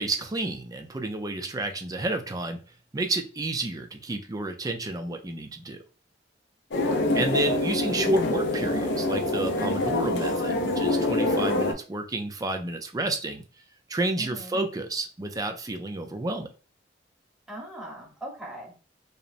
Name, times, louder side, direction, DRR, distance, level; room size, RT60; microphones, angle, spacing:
voice 1, 0.0-2.6 2.9-5.8 7.1-13.4 13.9-16.5, right 2 dB, 20° right, 0.4 m, -30 dB
sound 1, 6.7-11.7, left 2 dB, 70° left, 0.5 m, -25 dB
voice 2, 14.2-14.6 17.5-18.8, right 1 dB, 5° right, 0.9 m, -40 dB
2.9 x 2.0 x 2.5 m
head